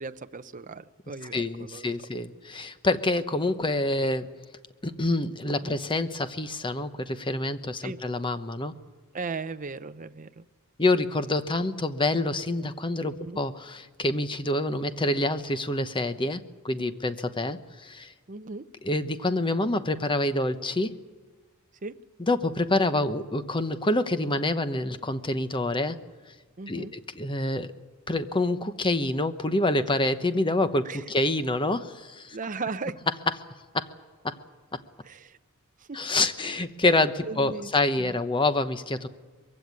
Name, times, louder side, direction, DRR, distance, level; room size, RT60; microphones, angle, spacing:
voice 1, 0.0-1.9 5.6-5.8 7.8-8.0 9.1-10.4 13.1-13.4 18.3-18.6 21.8-22.0 26.6-26.9 30.8-31.0 32.3-33.0 35.0-35.4 35.9-36.0 37.2-37.7 38.0-38.2, right 4 dB, 35° right, 10 dB, 0.7 m, -37 dB
voice 2, 1.3-4.3 4.8-8.8 10.8-18.1 18.8-21.0 22.3-26.0 26.7-27.7 28.1-32.4 33.7-33.9 34.2-34.4 35.9-39.1, left 2 dB, 20° left, 10 dB, 1.0 m, -27 dB
22.0 x 16.0 x 9.5 m, 1.4 s
head